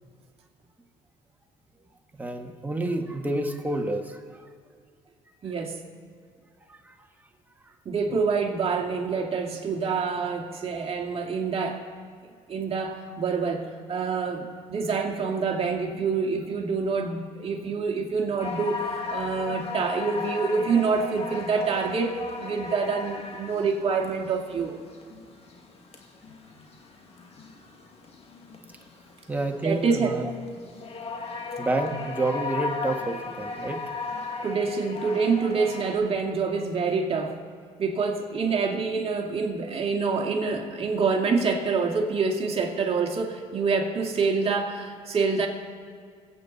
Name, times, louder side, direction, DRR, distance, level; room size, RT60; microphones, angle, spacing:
voice 1, 2.2-4.4 6.7-6.9 8.1-8.2 29.3-30.3 31.6-33.8, right 2 dB, 10° right, 3 dB, 1.7 m, -29 dB
voice 2, 5.4-5.8 7.9-11.8 12.5-24.8 29.6-30.2 34.4-37.4 37.8-45.5, right 4 dB, 45° right, 1 dB, 2.3 m, -26 dB
sound 1, 18.4-35.9, left 4 dB, 45° left, 2.2 m, -37 dB
23.0 x 8.8 x 4.2 m, 2.1 s
cardioid pair, 90°, 14 cm